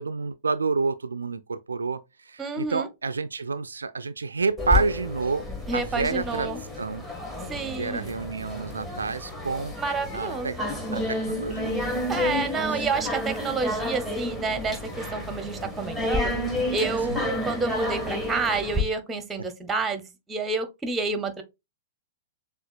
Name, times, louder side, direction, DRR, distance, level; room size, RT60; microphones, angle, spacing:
voice 1, 0.0-5.4 5.7-7.0 7.7-9.7 10.1-10.6 10.9-11.9 12.2-12.5 17.1-17.2, right 4 dB, 80° right, 0.3 m, -29 dB
voice 2, 2.4-2.9 5.7-6.6 7.5-8.2 9.8-10.8 12.1-16.3 16.7-21.4, right 4 dB, 15° right, 0.9 m, -29 dB
sound 1, 4.6-18.8, left 1 dB, 10° left, 1.6 m, -30 dB
6.8 x 2.4 x 2.4 m
figure-of-eight pair, 110°, 0 cm